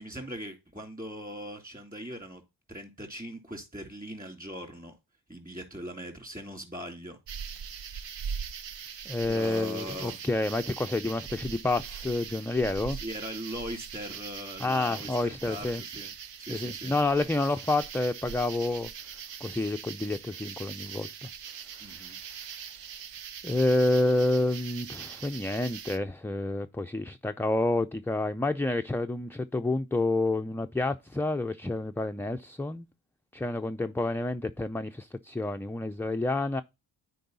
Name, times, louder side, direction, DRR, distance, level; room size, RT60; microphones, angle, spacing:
voice 1, 0.0-2.4 2.7-4.9 5.3-7.2 9.3-10.2 12.9-16.1 16.4-16.9 21.8-22.2, equal, 20° right, 3.3 m, -40 dB
sound 1, 7.3-26.0, right 7 dB, 75° right, 0.8 m, -41 dB
voice 2, 9.1-13.0 14.6-15.8 16.5-18.9 19.4-21.3 22.0-22.1 23.4-32.9 33.3-36.6, left 2 dB, 5° left, 0.4 m, -29 dB
9.2 x 4.7 x 4.0 m
cardioid pair, 45°, 44 cm